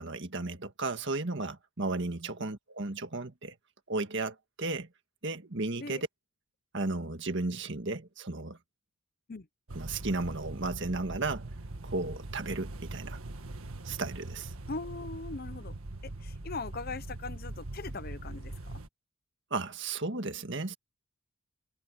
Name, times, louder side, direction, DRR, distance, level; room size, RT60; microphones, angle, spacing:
voice 1, 0.0-3.5 3.9-4.9 5.2-6.1 6.7-8.6 9.7-11.5 11.8-13.2 13.8-14.5 19.5-20.8, right 3 dB, 55° right, 1.7 m, -34 dB
sound 1, 9.7-18.9, right 2 dB, 75° right, 1.6 m, -42 dB
voice 2, 14.7-15.7 16.2-18.5, left 3 dB, 45° left, 0.7 m, -40 dB
head